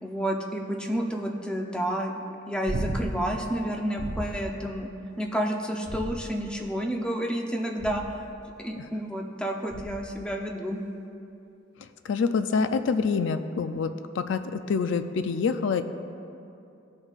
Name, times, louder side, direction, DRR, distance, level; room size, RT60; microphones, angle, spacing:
voice 1, 0.0-2.1 2.5-4.9 5.2-8.0 8.6-10.8, equal, 5° left, 1 dB, 0.6 m, -30 dB
sound 1, 2.7-3.3 4.0-4.5 5.8-6.6 7.8-8.3 9.7-10.1 12.5-12.6, right 1 dB, 55° right, 0.8 m, -34 dB
voice 2, 12.0-13.9 14.2-15.8, left 5 dB, 65° left, 9 dB, 0.4 m, -26 dB
15.5 x 5.3 x 2.4 m, 2.6 s
head